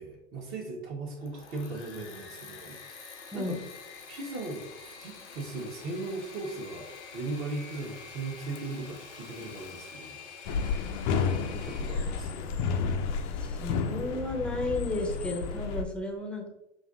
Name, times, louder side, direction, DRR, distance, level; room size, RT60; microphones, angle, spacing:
voice 1, 0.0-3.0 3.3-3.6 4.1-4.7 5.0-10.5 11.3-12.5, right 3 dB, 40° right, -1 dB, 1.1 m, -38 dB
Engine / Mechanisms, 1.1-12.3, left 5 dB, 90° left, 0.8 m, -47 dB
sound 1, 10.5-15.8, left 5 dB, 45° left, 0.5 m, -31 dB
voice 2, 13.3-16.5, left 2 dB, 5° left, 1 dB, 0.7 m, -33 dB
6.0 x 2.6 x 2.5 m, 0.87 s
hypercardioid pair, 100°, 34 cm